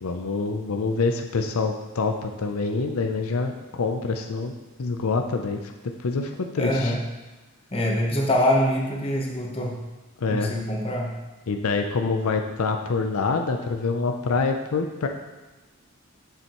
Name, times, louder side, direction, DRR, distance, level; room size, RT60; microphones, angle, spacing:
voice 1, 0.0-4.5 4.8-5.7 6.0-7.0 10.2-10.5 11.5-15.1, left 4 dB, 80° left, 4 dB, 0.5 m, -26 dB
voice 2, 6.6-7.0 7.7-9.8 10.3-11.1, left 1 dB, 25° left, 0 dB, 1.0 m, -24 dB
7.7 x 7.0 x 3.0 m, 1.2 s
head